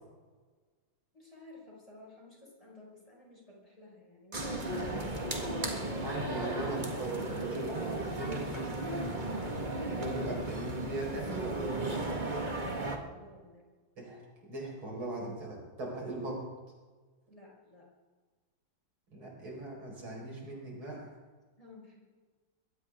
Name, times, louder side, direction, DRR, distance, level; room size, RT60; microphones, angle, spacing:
voice 1, 1.1-5.6 13.0-13.7 17.3-17.9 19.1-19.3 21.6-22.0, left 2 dB, 15° left, -4 dB, 5.4 m, -54 dB
sound 1, 4.3-13.0, right 2 dB, 25° right, 1.7 m, -35 dB
voice 2, 6.0-9.1 9.9-12.3 14.0-14.2 14.5-16.4 19.1-21.1, right 2 dB, 90° right, -2 dB, 5.8 m, -39 dB
22.0 x 17.0 x 3.7 m, 1.3 s
omnidirectional pair, 2.2 m